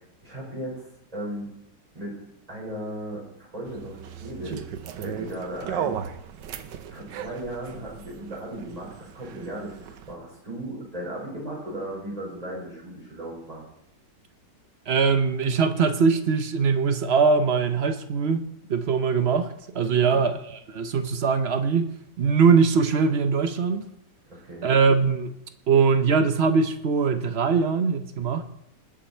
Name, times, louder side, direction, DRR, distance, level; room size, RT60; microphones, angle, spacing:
voice 1, 0.2-0.9 1.1-1.5 1.9-4.7 5.0-6.0 6.9-13.7 19.9-20.3 24.3-24.7, right 1 dB, 20° right, 5.5 m, -36 dB
sound 1, 3.7-10.1, right 8 dB, 80° right, 1.5 m, -36 dB
voice 2, 14.9-18.4 18.7-21.9 22.2-23.8 24.6-25.3 25.7-28.4, right 5 dB, 50° right, 0.8 m, -22 dB
19.5 x 7.6 x 4.5 m
omnidirectional pair, 1.9 m